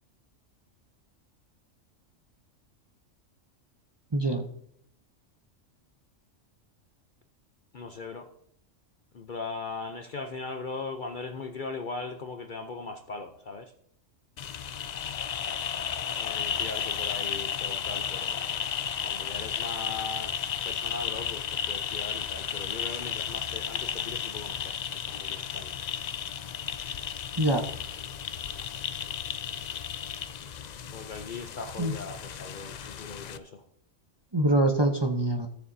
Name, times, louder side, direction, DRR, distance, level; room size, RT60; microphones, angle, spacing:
voice 1, 4.1-4.5 27.4-27.6 31.8-31.9 34.3-35.5, right 1 dB, 25° right, 2 dB, 0.7 m, -24 dB
voice 2, 7.7-8.3 9.1-13.7 16.2-18.7 19.0-25.8 30.9-33.6, left 4 dB, 50° left, 6 dB, 0.7 m, -39 dB
sound 1, 14.4-33.4, left 8 dB, 80° left, 0.3 m, -34 dB
16.5 x 6.9 x 2.7 m, 0.72 s
omnidirectional pair, 1.3 m